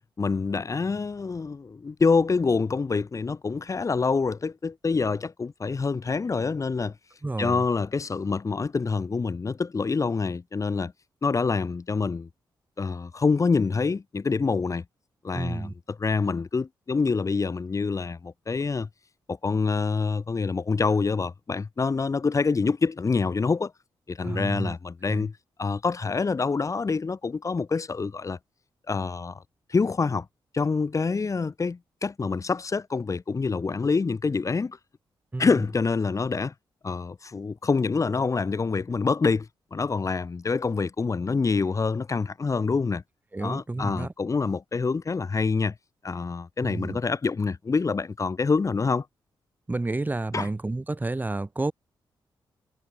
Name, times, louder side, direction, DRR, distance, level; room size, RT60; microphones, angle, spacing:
voice 1, 0.2-6.9 7.4-10.9 11.2-12.3 12.8-14.8 15.2-18.9 19.3-23.7 24.1-25.3 25.6-28.4 28.9-29.4 29.7-30.3 30.5-34.8 35.4-36.5 36.8-43.0 43.4-45.7 46.0-49.1 50.3-50.5, left 4 dB, 40° left, 7.5 m, -26 dB
voice 2, 7.2-7.6 15.3-15.7 24.2-24.7 25.1-25.3 35.3-35.5 43.3-44.1 46.6-47.0 49.7-51.7, right 2 dB, 20° right, 6.8 m, -30 dB
cardioid pair, 95°, 9 cm